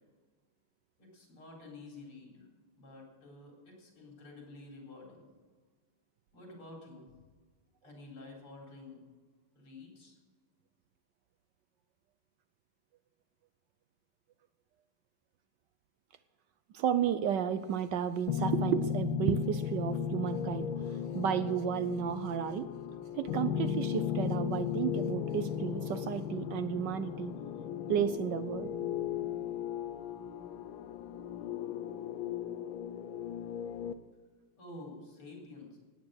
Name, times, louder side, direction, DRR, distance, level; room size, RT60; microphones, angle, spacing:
voice 1, 1.0-2.5 2.7-5.3 6.3-7.2 7.8-9.0 9.5-10.2 34.6-35.8, left 2 dB, 90° left, -1 dB, 5.0 m, -50 dB
voice 2, 16.7-22.7 23.1-27.4 27.9-28.7, right 9 dB, 70° right, 12 dB, 1.1 m, -32 dB
sound 1, 18.3-33.9, left 8 dB, 70° left, 1.5 m, -36 dB
17.5 x 9.2 x 6.5 m, 1.4 s
omnidirectional pair, 2.3 m